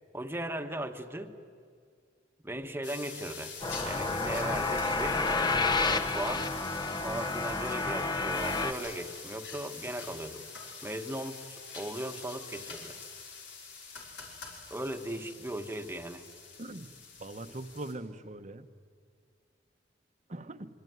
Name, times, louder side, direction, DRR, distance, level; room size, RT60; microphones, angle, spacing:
voice 1, 0.1-1.3 2.4-3.5 3.8-5.2 5.9-6.5 6.9-10.4 10.8-13.0 14.7-16.3, right 1 dB, 15° right, 7 dB, 1.3 m, -37 dB
sound 1, 2.8-17.9, left 5 dB, 90° left, 5.3 m, -46 dB
sound 2, 3.6-8.7, left 3 dB, 25° left, 1.2 m, -30 dB
voice 2, 17.2-18.6 20.3-20.7, right 2 dB, 40° right, 9 dB, 1.1 m, -41 dB
25.5 x 24.0 x 9.5 m, 2.1 s
head